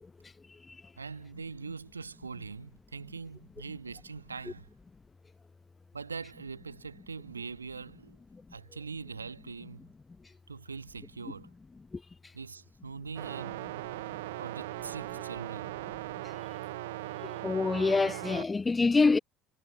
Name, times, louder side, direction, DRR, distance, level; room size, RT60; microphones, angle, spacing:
voice 1, 1.0-4.7 5.9-8.2 8.5-9.9 10.5-11.5 12.3-13.8 14.4-15.7 17.0-17.2, right 5 dB, 85° right, 1.4 m, -42 dB
sound 1, 13.2-18.4, right 18 dB, 70° right, 0.4 m, -39 dB
voice 2, 17.4-19.2, left 4 dB, 20° left, 0.8 m, -25 dB
figure-of-eight pair, 65°, 0 cm